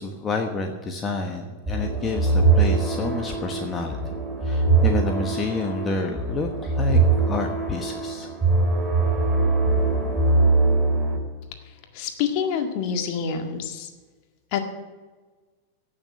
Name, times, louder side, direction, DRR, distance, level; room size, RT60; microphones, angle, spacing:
voice 1, 0.0-4.0 4.4-7.0 7.3-8.3, left 3 dB, 20° left, 4 dB, 1.2 m, -29 dB
sound 1, 1.7-11.2, right 3 dB, 15° right, 3.0 m, -22 dB
voice 2, 11.9-13.9 14.5-14.6, left 7 dB, 45° left, 6 dB, 1.8 m, -27 dB
16.5 x 7.0 x 7.8 m, 1.4 s
figure-of-eight pair, 90°, 0 cm